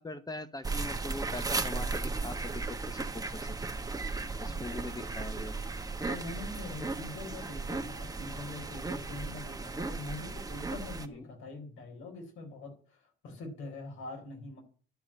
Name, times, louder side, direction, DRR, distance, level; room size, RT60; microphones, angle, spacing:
voice 1, 0.0-3.6 4.4-5.5 9.7-9.8 11.1-11.3, left 2 dB, 20° left, 11 dB, 1.0 m, -42 dB
sound 1, 0.6-11.1, right 3 dB, 20° right, 1.2 m, -36 dB
voice 2, 4.4-5.2 6.1-14.6, left 3 dB, 80° left, 3 dB, 4.3 m, -44 dB
11.5 x 4.9 x 8.4 m, 0.42 s
cardioid pair, 90°, 20 cm